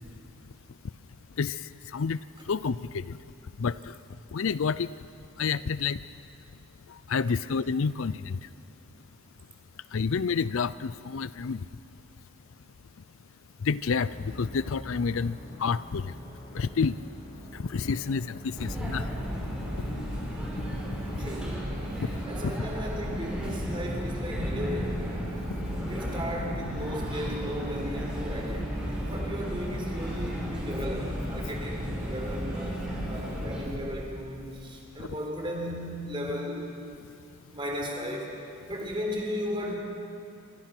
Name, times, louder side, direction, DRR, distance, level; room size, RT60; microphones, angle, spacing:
voice 1, 2.5-3.1 3.6-3.7 4.3-4.9 5.4-6.0 7.1-8.4 9.9-11.6 13.6-16.0 16.5-17.0 17.7-19.0, left 5 dB, 65° left, 16 dB, 0.5 m, -28 dB
sound 1, 13.9-33.6, left 1 dB, 25° left, 6.8 m, -45 dB
sound 2, 18.6-33.7, equal, 5° right, 5.1 m, -34 dB
voice 2, 21.2-21.8 22.2-25.1 25.8-36.6 37.5-38.3 38.7-39.8, equal, 20° right, 0 dB, 4.1 m, -35 dB
27.0 x 23.5 x 6.1 m, 2.6 s
head